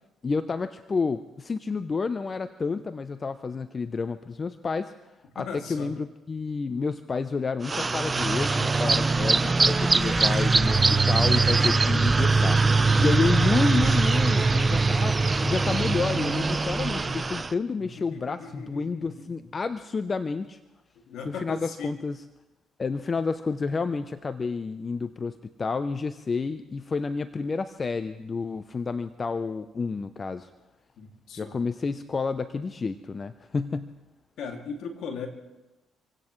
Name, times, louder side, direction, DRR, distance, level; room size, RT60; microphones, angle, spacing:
voice 1, 0.2-4.9 5.3-20.6 21.2-22.2 22.8-30.5 31.4-34.0, left 4 dB, 35° left, 11 dB, 0.7 m, -30 dB
voice 2, 5.3-5.9 17.8-19.5 21.0-22.0 31.0-31.6 34.4-35.3, left 5 dB, 70° left, 2 dB, 2.5 m, -38 dB
sound 1, 7.6-17.5, right 3 dB, 30° right, 0.8 m, -22 dB
26.5 x 17.0 x 3.2 m, 1.1 s
hypercardioid pair, 60°, 0 cm